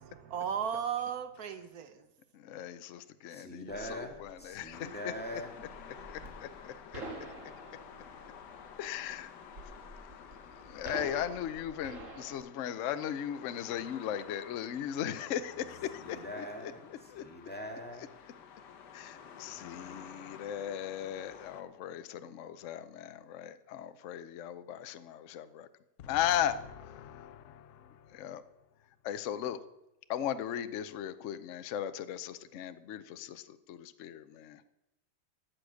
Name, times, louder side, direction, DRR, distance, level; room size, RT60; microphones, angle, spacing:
voice 1, 0.0-2.0, right 8 dB, 60° right, 1.0 m, -35 dB
voice 2, 2.3-5.0 6.1-7.0 8.8-9.3 10.7-15.8 16.1-16.4 17.1-17.2 18.9-25.7 26.0-28.4 29.0-29.6 30.1-34.6, left 10 dB, 85° left, 0.6 m, -37 dB
voice 3, 3.3-5.5 16.0-16.8 17.2-18.1, left 1 dB, 5° left, 1.9 m, -42 dB
sound 1, 3.7-12.4, right 2 dB, 40° right, 2.1 m, -48 dB
sound 2, 4.7-21.6, left 7 dB, 65° left, 1.5 m, -51 dB
13.0 x 7.7 x 6.4 m
omnidirectional pair, 2.2 m